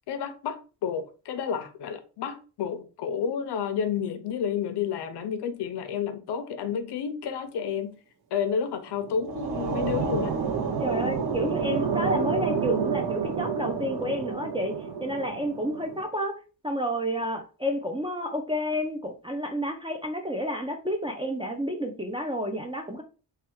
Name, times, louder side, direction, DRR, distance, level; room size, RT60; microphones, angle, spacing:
voice 1, 0.1-8.0 8.3-10.3, left 7 dB, 75° left, 0.6 m, -30 dB
sound 1, 8.9-16.0, right 6 dB, 65° right, 0.7 m, -29 dB
voice 2, 10.8-14.7 15.0-16.3 16.6-23.0, equal, 15° right, 0.3 m, -30 dB
3.2 x 2.3 x 3.0 m
wide cardioid pair, 135°, 41 cm